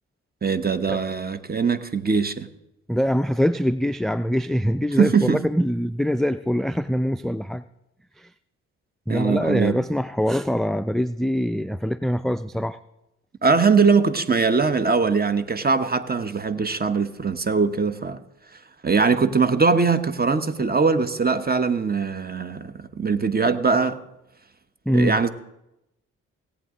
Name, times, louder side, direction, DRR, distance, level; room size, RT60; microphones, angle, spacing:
voice 1, 0.4-2.5 4.9-5.4 9.1-9.8 13.4-18.2 18.8-24.0 24.9-25.3, right 5 dB, 30° right, 1.1 m, -21 dB
voice 2, 2.9-7.6 8.2-8.3 9.1-12.8 24.9-25.1, equal, ahead, 0.3 m, -23 dB
17.5 x 8.5 x 3.8 m
hypercardioid pair, 40°, 32 cm